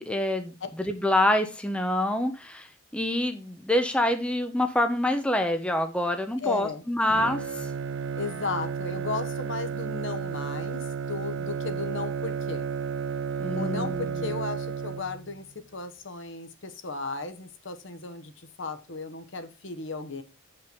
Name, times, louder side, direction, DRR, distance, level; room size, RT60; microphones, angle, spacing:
voice 1, 0.0-2.7 2.9-7.7 13.4-14.3, left 1 dB, 5° left, 6 dB, 0.7 m, -26 dB
voice 2, 6.4-6.8 8.2-12.7 13.5-15.5 15.7-20.2, left 4 dB, 65° left, 8 dB, 1.1 m, -35 dB
Bowed string instrument, 7.1-15.4, right 6 dB, 65° right, 0.5 m, -32 dB
7.7 x 5.6 x 5.2 m, 0.31 s
head